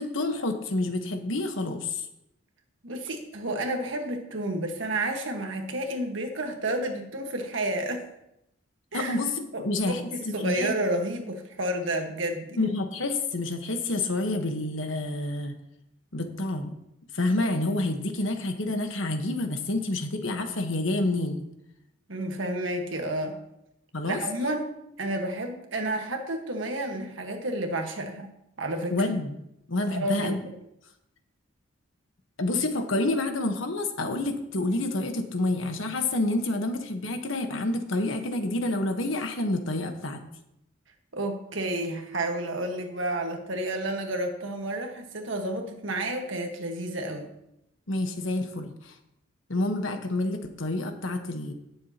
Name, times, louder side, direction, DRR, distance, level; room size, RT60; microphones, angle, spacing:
voice 1, 0.0-2.0 8.9-10.7 12.6-15.5 16.1-16.7 17.1-21.4 23.9-24.2 28.9-29.3 29.7-30.4 32.4-40.2 47.9-48.9 49.5-51.5, left 2 dB, 70° left, 6 dB, 1.2 m, -28 dB
voice 2, 2.8-8.0 8.9-9.2 9.5-12.6 22.1-23.4 24.0-28.3 28.6-28.9 29.9-30.5 41.1-47.3, right 1 dB, 70° right, 4 dB, 1.5 m, -31 dB
17.0 x 7.2 x 2.9 m, 0.82 s
head